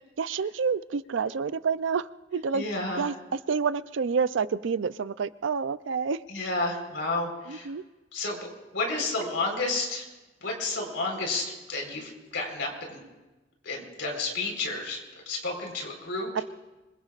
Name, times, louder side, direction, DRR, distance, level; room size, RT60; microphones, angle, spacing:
voice 1, 0.2-2.6 3.0-3.1 3.5-6.2 7.5-7.8 16.4-16.5, right 5 dB, 70° right, 15 dB, 0.5 m, -28 dB
voice 2, 2.5-3.0 6.3-7.7 8.1-8.5 8.7-10.0 10.4-13.0 13.6-15.0 15.3-16.4, left 2 dB, 70° left, 1 dB, 4.2 m, -31 dB
25.5 x 22.5 x 2.5 m, 1.1 s
head